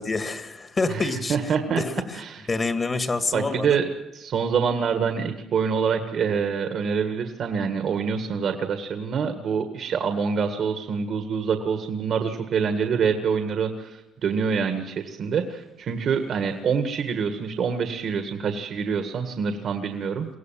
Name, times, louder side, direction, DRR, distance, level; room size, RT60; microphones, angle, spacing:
voice 1, 0.0-1.4 1.7-2.2 2.5-3.8, left 3 dB, 35° left, 9 dB, 2.0 m, -27 dB
voice 2, 0.9-1.8 2.1-2.4 3.3-20.3, right 6 dB, 65° right, 6 dB, 1.8 m, -26 dB
23.0 x 17.5 x 7.6 m, 0.96 s
cardioid pair, 90°, 0 cm